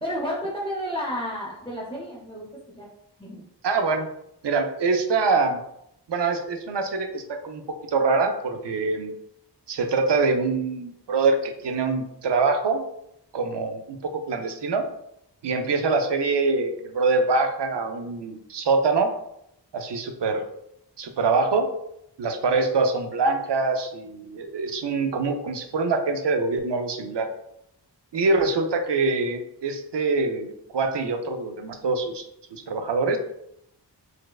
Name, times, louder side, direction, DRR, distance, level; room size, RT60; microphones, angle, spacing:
voice 1, 0.0-2.5 2.8-2.9 3.2-3.4, equal, 10° left, -5 dB, 0.6 m, -31 dB
voice 2, 3.6-4.1 4.4-5.6 6.1-7.6 7.9-9.1 9.7-12.8 13.3-14.8 15.4-19.1 19.7-20.5 21.0-21.7 22.2-27.3 28.1-32.2 32.5-33.2, right 3 dB, 75° right, 6 dB, 0.5 m, -24 dB
4.4 x 2.1 x 2.3 m, 0.77 s
wide cardioid pair, 60°, 43 cm